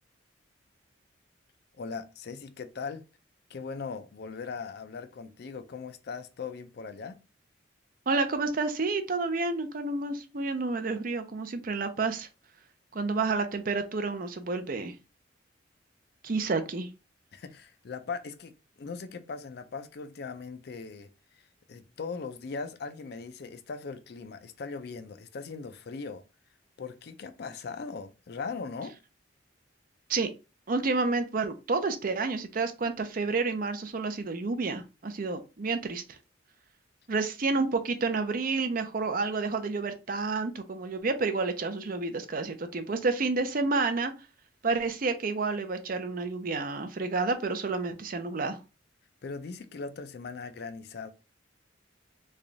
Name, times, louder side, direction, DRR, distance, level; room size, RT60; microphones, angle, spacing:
voice 1, 1.8-3.0 3.5-7.2 17.3-18.5 18.8-21.1 21.7-26.2 26.8-28.9 49.2-51.1, left 4 dB, 55° left, 0.4 m, -39 dB
voice 2, 8.1-12.3 12.9-14.9 16.2-16.9 30.1-30.3 30.7-36.0 37.1-44.1 44.6-48.6, right 3 dB, 45° right, 0.5 m, -30 dB
3.2 x 2.3 x 3.8 m
head